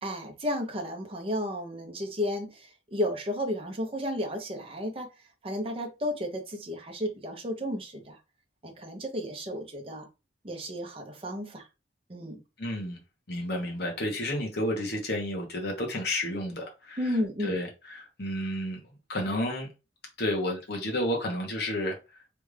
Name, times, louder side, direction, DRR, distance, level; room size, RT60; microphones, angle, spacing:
voice 1, 0.0-5.1 5.4-8.2 8.6-10.1 10.4-11.7 12.1-12.4 17.0-17.5, equal, 30° right, 0.8 m, -33 dB
voice 2, 12.6-13.0 13.3-19.7 20.2-22.0, left 1 dB, 60° left, 1.2 m, -31 dB
3.3 x 2.5 x 3.3 m
head